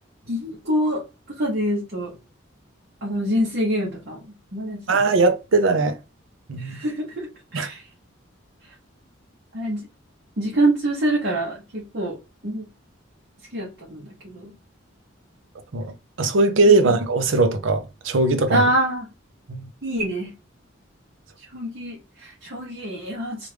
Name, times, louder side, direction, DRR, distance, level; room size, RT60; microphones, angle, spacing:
voice 1, 0.3-2.2 3.0-4.3 4.5-5.1 6.6-7.9 8.6-8.7 9.5-9.8 10.4-12.2 12.4-12.7 13.5-14.5 16.6-17.0 18.5-19.1 19.8-20.3 21.4-23.5, right 1 dB, 55° right, 0.9 m, -26 dB
voice 2, 4.9-6.0 6.5-6.8 7.5-7.7 15.7-15.9 16.2-18.6 19.5-19.7, right 3 dB, 75° right, 0.6 m, -19 dB
3.0 x 2.5 x 3.3 m
head